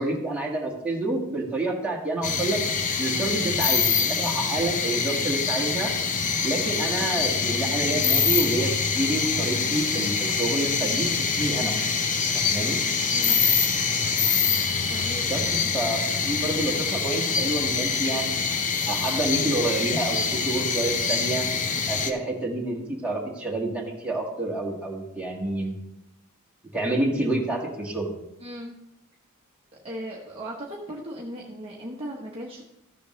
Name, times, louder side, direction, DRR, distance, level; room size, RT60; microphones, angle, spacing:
voice 1, 0.0-2.6 3.0-5.9 6.4-8.7 9.0-11.1 11.4-11.8 12.3-12.8 15.2-18.4 18.9-21.4 21.9-25.8 26.7-28.1, right 2 dB, 5° right, -4 dB, 1.8 m, -28 dB
sound 1, 2.2-22.1, left 5 dB, 35° left, 0.7 m, -25 dB
voice 2, 14.9-15.9 16.4-16.6 28.4-28.7 29.8-32.6, equal, 25° right, -3 dB, 1.1 m, -38 dB
14.0 x 6.7 x 3.2 m, 0.89 s
head